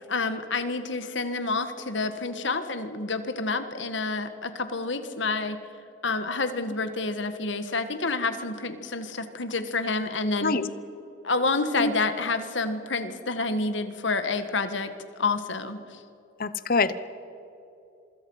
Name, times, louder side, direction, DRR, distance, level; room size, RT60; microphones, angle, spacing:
voice 1, 0.1-5.6 6.0-10.5 11.2-14.9 15.2-16.0, left 3 dB, 70° left, 9 dB, 1.7 m, -28 dB
voice 2, 16.4-17.0, left 3 dB, 45° left, 14 dB, 0.9 m, -24 dB
26.5 x 24.5 x 5.7 m, 2.8 s
head